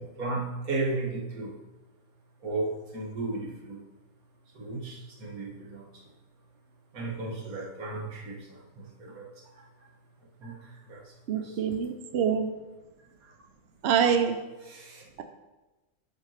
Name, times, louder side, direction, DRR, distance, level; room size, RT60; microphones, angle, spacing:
voice 1, 0.0-1.6 2.4-3.8 4.5-6.0 6.9-9.9 10.2-11.6 13.0-13.3 14.6-15.0, right 2 dB, 85° right, -1 dB, 1.9 m, -35 dB
voice 2, 11.3-12.5 13.8-14.4, right 7 dB, 55° right, 7 dB, 0.8 m, -25 dB
7.7 x 5.2 x 5.8 m, 1.1 s
omnidirectional pair, 1.5 m